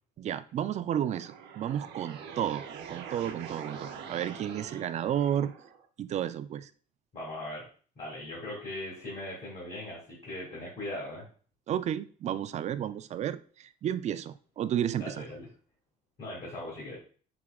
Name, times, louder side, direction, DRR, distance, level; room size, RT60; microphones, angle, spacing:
voice 1, 0.2-5.5 6.0-6.7 11.7-15.2, right 10 dB, 45° right, 13 dB, 0.4 m, -32 dB
sound 1, 0.9-5.9, right 7 dB, 80° right, 0.8 m, -44 dB
voice 2, 7.1-7.6 8.0-11.3 15.0-15.5 16.2-17.0, left 1 dB, 45° left, -5 dB, 2.2 m, -39 dB
5.9 x 3.6 x 2.3 m, 0.42 s
cardioid pair, 110°, 17 cm